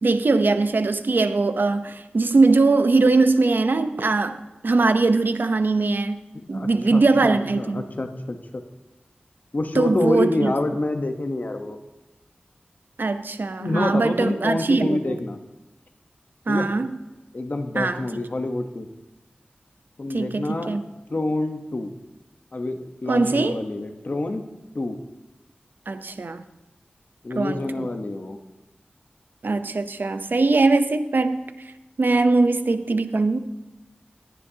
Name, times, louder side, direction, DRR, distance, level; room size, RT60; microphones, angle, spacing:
voice 1, 0.0-6.2 6.5-7.8 9.8-10.5 13.0-15.2 16.5-17.0 17.8-18.0 20.1-20.8 23.1-23.6 25.9-26.4 27.4-27.9 29.4-31.5 32.0-33.4, right 3 dB, 65° right, 0.7 m, -21 dB
voice 2, 6.3-8.6 9.5-11.8 13.6-15.4 16.5-16.7 17.3-18.9 20.0-20.8 21.1-21.9 22.5-24.5 24.7-25.0 27.2-28.4, left 2 dB, 50° left, 1.0 m, -27 dB
16.5 x 10.0 x 2.8 m
wide cardioid pair, 70°, 4 cm